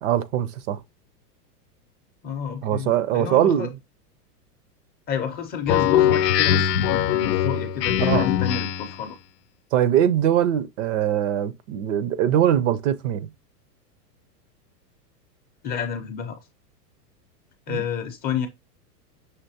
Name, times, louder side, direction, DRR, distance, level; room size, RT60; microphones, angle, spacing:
voice 1, 0.0-0.8 2.6-3.7 8.0-8.3 9.7-13.3 17.7-17.8, right 10 dB, 50° right, 0.6 m, -22 dB
voice 2, 2.2-3.7 5.1-9.2 15.6-16.4 17.7-18.5, left 7 dB, 20° left, 0.5 m, -30 dB
Speech synthesizer, 5.7-9.0, left 10 dB, 85° left, 0.6 m, -21 dB
5.8 x 2.9 x 2.7 m
hypercardioid pair, 125°, 47 cm